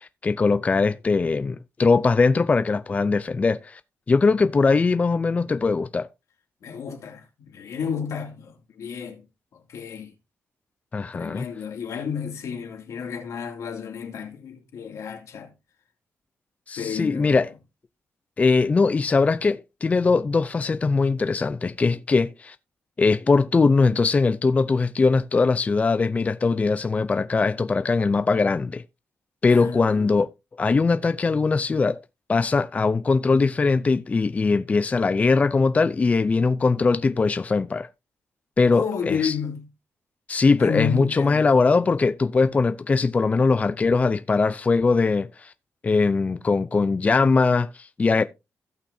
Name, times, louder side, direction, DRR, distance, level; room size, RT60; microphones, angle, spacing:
voice 1, 0.0-3.8 4.1-6.1 10.9-11.5 16.7-17.5 18.4-22.6 23.0-28.8 29.4-30.3 30.6-32.0 32.3-37.9 38.6-39.3 40.3-45.5 45.8-48.2, left 4 dB, 25° left, 0.5 m, -21 dB
voice 2, 6.6-9.2 9.5-10.1 11.1-15.5 16.8-17.5 29.5-30.1 38.7-39.7 40.6-41.4, left 7 dB, 80° left, 2.5 m, -31 dB
16.5 x 6.0 x 2.7 m
wide cardioid pair, 125°, 5 cm